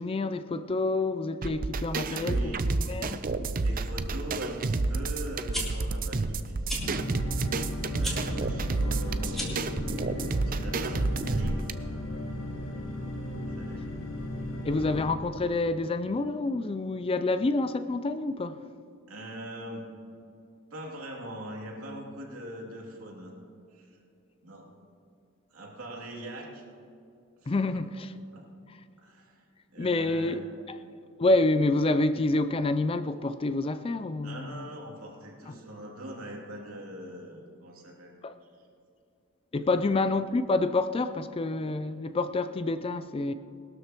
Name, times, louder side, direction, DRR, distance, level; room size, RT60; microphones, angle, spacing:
voice 1, 0.0-2.5 2.9-3.3 14.6-18.6 27.5-28.1 28.7-28.8 29.8-30.4 30.7-30.8 31.2-34.7 35.5-35.6 38.2-38.3 39.5-43.3, left 2 dB, 25° left, 0.4 m, -28 dB
sound 1, 1.4-11.7, right 3 dB, 40° right, 0.5 m, -30 dB
voice 2, 2.1-2.7 3.6-6.6 7.9-9.8 10.2-11.7 13.5-13.9 19.1-19.9 20.7-23.3 23.7-24.0 24.4-24.7 25.5-26.6 27.4-27.8 28.3-28.5 29.0-30.4 34.2-38.1, right 1 dB, 75° right, 2.7 m, -41 dB
sound 2, 5.5-5.6 6.6-6.8 8.0-8.2 9.3-9.7, equal, ahead, 2.3 m, -34 dB
sound 3, 6.8-15.0, left 1 dB, 85° left, 1.8 m, -35 dB
20.5 x 12.5 x 3.0 m
head